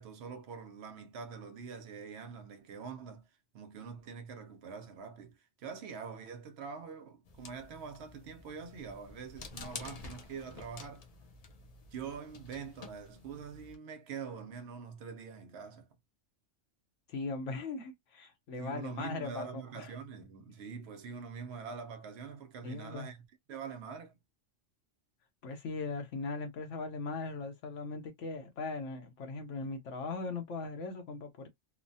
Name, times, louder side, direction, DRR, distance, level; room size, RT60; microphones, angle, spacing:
voice 1, 0.0-3.2 3.5-11.1 11.9-15.9 18.6-24.2, right 6 dB, 65° right, 0.8 m, -44 dB
sound 1, 7.3-13.8, left 4 dB, 55° left, 0.4 m, -50 dB
voice 2, 17.1-19.9 22.6-23.1 25.4-31.5, left 3 dB, 75° left, 1.0 m, -39 dB
3.0 x 2.1 x 2.5 m
omnidirectional pair, 1.3 m